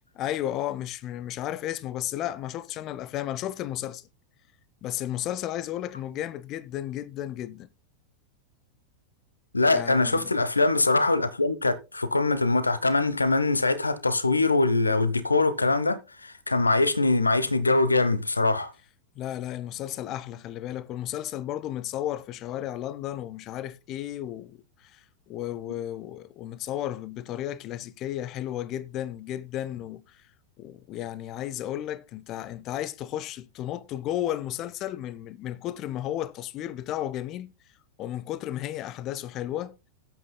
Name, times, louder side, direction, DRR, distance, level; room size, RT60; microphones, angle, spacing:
voice 1, 0.2-4.0 4.8-7.7 9.7-10.3 19.2-30.2 30.6-37.5 38.0-39.8, left 12 dB, 35° left, 0.6 m, -33 dB
voice 2, 9.5-18.7, left 3 dB, 80° left, 0.9 m, -23 dB
18.0 x 8.2 x 2.2 m
figure-of-eight pair, 90°, 0 cm